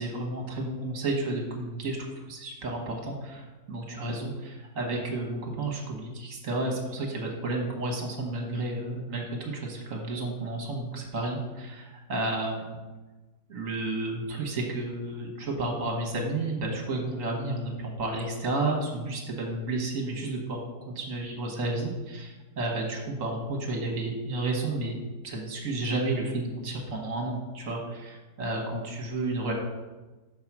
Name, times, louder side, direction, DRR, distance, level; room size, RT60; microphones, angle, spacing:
voice 1, 0.0-12.8 13.5-24.9 25.2-29.5, right 2 dB, 55° right, 0 dB, 1.6 m, -32 dB
5.6 x 4.8 x 6.0 m, 1.2 s
omnidirectional pair, 1.7 m